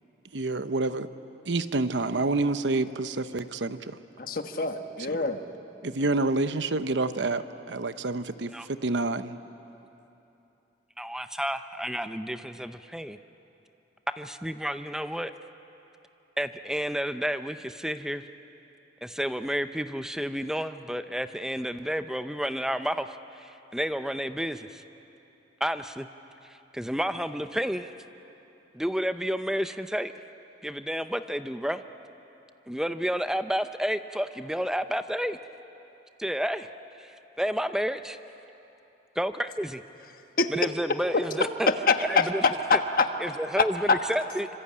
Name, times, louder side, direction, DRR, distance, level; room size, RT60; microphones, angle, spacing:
voice 1, 0.3-1.1 1.4-4.0 5.8-9.4, right 2 dB, 85° right, 11 dB, 0.9 m, -28 dB
voice 2, 4.2-5.4 40.4-40.5 41.9-42.3 42.7-43.1 43.6-44.0, left 4 dB, 50° left, 6 dB, 1.4 m, -24 dB
voice 3, 11.0-13.2 14.2-15.3 16.4-18.2 19.0-24.8 25.6-26.1 26.7-27.9 28.7-30.1 30.6-31.8 32.7-35.4 36.2-36.7 37.0-37.1 37.4-38.2 39.2-39.8 40.5-41.7 42.0-42.4 42.7-42.8 43.2-44.5, equal, 5° right, 10 dB, 0.6 m, -30 dB
26.5 x 25.5 x 8.7 m, 3.0 s
head